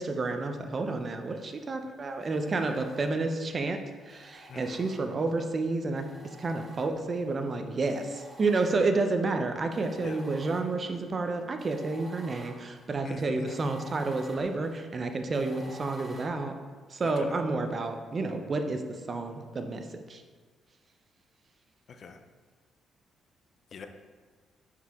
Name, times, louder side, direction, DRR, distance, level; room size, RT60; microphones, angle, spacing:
voice 1, 0.0-6.1 6.4-16.5 16.9-20.2, right 3 dB, 40° right, 6 dB, 0.6 m, -30 dB
sound 1, 2.2-3.5 4.1-5.4 6.0-7.3 7.8-9.2 9.7-16.3, equal, 20° right, 1.1 m, -51 dB
voice 2, 13.0-13.7 17.0-17.3 22.0-22.2 23.7-23.9, left 5 dB, 55° left, 7 dB, 0.5 m, -42 dB
5.8 x 4.6 x 3.6 m, 1.5 s
cardioid pair, 90°, 0 cm